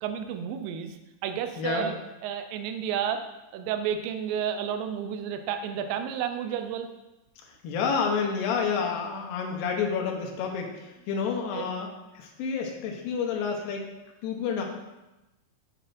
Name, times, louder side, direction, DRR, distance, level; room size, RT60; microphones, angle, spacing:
voice 1, 0.0-1.0 1.2-1.9 2.2-3.2 3.5-6.9 11.5-11.7, right 8 dB, 80° right, 6 dB, 2.2 m, -31 dB
voice 2, 1.6-1.9 7.6-11.9 12.1-13.8 14.2-14.6, left 5 dB, 80° left, 1 dB, 2.6 m, -29 dB
8.5 x 4.9 x 2.5 m, 1.0 s
omnidirectional pair, 4.1 m